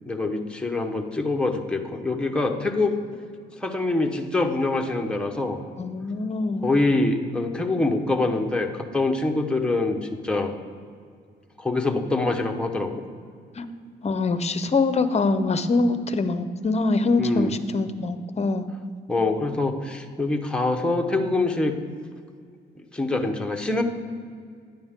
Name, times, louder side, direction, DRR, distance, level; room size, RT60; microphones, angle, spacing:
voice 1, 0.0-3.0 3.6-5.6 6.6-10.0 10.2-10.5 11.6-13.0 17.2-17.5 19.1-21.7 22.9-23.8, left 2 dB, 5° left, 2 dB, 1.1 m, -24 dB
voice 2, 5.8-6.7 13.6-13.7 14.0-18.7, left 3 dB, 35° left, 11 dB, 0.8 m, -24 dB
10.5 x 10.0 x 3.7 m, 2.1 s
cardioid pair, 90°, 20 cm